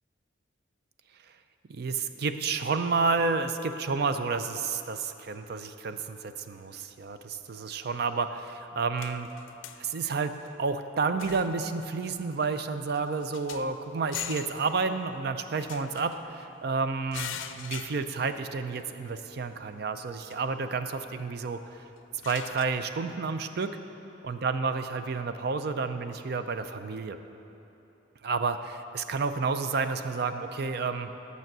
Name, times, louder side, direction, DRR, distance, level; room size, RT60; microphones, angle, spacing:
voice 1, 1.7-9.3 9.8-10.3 10.6-21.8 22.3-23.8 24.2-27.2 28.2-31.1, right 4 dB, 55° right, 9 dB, 0.4 m, -30 dB
sound 1, 8.5-8.6 9.0-9.8 10.3-10.5 11.2-11.6 12.0-12.2 12.6-12.7 12.9-13.7 14.1-14.6 15.6-16.5 17.1-18.4 18.8-18.9 20.3-20.4 22.0-22.7, left 10 dB, 90° left, 0.4 m, -41 dB
9.2 x 6.9 x 6.0 m, 3.0 s
head